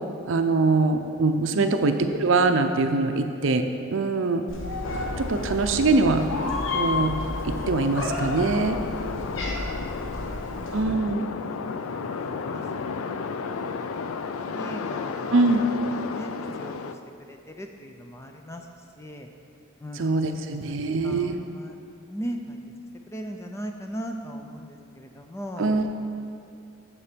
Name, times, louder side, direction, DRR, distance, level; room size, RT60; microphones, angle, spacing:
voice 1, 0.2-4.4 5.2-6.2 6.7-7.1 7.5-8.8 10.7-11.3 15.3-15.6 20.0-21.3 25.6-25.9, right 3 dB, 70° right, 7 dB, 0.5 m, -23 dB
voice 2, 1.5-1.9 8.9-10.5 10.9-11.6 11.9-17.0 17.3-18.7 19.0-19.3 19.8-20.0 20.4-22.6 23.1-25.7, equal, 15° left, 3 dB, 0.4 m, -40 dB
Meow, 4.5-10.8, left 2 dB, 65° left, 1.1 m, -32 dB
sound 1, 4.8-16.9, left 5 dB, 85° left, 0.4 m, -33 dB
7.1 x 6.9 x 5.1 m, 2.5 s
head